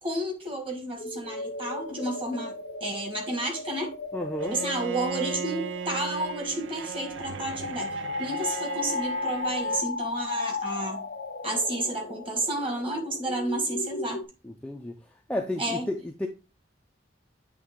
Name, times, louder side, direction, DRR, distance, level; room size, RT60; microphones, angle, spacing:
voice 1, 0.0-3.9 4.5-11.0 11.4-14.2 15.6-15.9, right 1 dB, 30° right, 1.7 m, -31 dB
sound 1, 1.0-14.2, left 4 dB, 60° left, 0.6 m, -36 dB
voice 2, 4.1-4.6 14.4-15.0 15.3-16.3, left 1 dB, 5° left, 0.4 m, -32 dB
Bowed string instrument, 4.4-9.9, right 7 dB, 85° right, 0.5 m, -36 dB
8.3 x 3.4 x 3.6 m
head